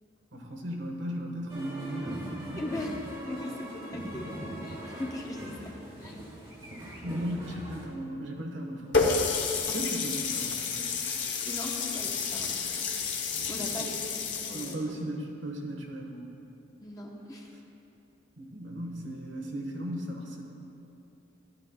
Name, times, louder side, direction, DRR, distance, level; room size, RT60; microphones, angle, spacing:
voice 1, 0.3-2.7 7.0-9.2 9.7-10.9 13.8-13.9 14.5-16.3 18.4-20.4, equal, 70° right, 0 dB, 1.3 m, -36 dB
sound 1, 1.5-7.9, equal, 25° right, 1.7 m, -41 dB
voice 2, 2.6-4.3 4.6-5.7 6.0-6.2 11.5-12.9 13.5-14.2 14.5-14.8 16.8-17.5, left 1 dB, 20° left, -1 dB, 0.9 m, -39 dB
Water tap faucet, 8.9-14.7, left 5 dB, 65° left, 1.0 m, -30 dB
14.0 x 11.5 x 2.3 m, 2.7 s
head